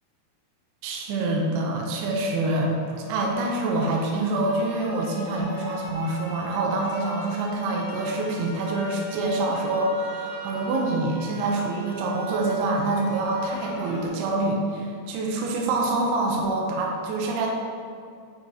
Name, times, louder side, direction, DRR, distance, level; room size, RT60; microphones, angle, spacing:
voice 1, 0.8-2.7 3.1-17.5, right 2 dB, 80° right, -1 dB, 2.5 m, -26 dB
sound 1, 2.5-14.1, equal, 75° left, 3.1 m, -42 dB
8.9 x 4.7 x 2.8 m, 2.4 s
omnidirectional pair, 5.1 m